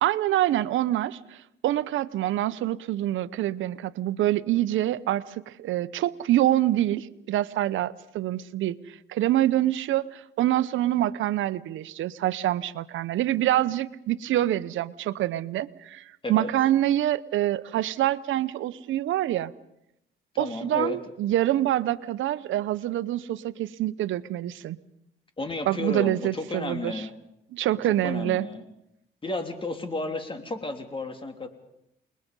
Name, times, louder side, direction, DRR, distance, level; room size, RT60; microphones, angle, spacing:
voice 1, 0.0-1.4 1.6-16.0 16.3-19.5 20.4-24.8 25.7-27.1 27.5-28.5, right 13 dB, 80° right, 15 dB, 0.9 m, -26 dB
voice 2, 20.4-21.0 25.4-27.1 28.0-28.6 29.2-31.5, left 2 dB, 25° left, 6 dB, 3.3 m, -32 dB
29.0 x 21.0 x 5.4 m, 0.80 s
cardioid pair, 90°, 20 cm